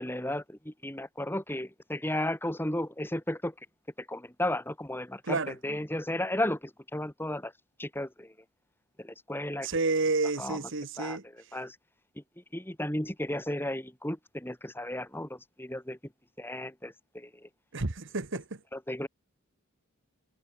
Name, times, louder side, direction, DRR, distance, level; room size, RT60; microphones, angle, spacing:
voice 1, 0.0-3.5 4.1-6.6 6.9-7.5 7.8-8.3 9.0-9.7 10.4-10.6 11.0-11.2 11.5-11.7 12.5-16.0 16.4-17.3 18.7-19.1, left 1 dB, 10° left, 3.3 m, -34 dB
voice 2, 5.2-5.6 9.6-11.2 17.7-18.6, right 3 dB, 60° right, 1.3 m, -30 dB
head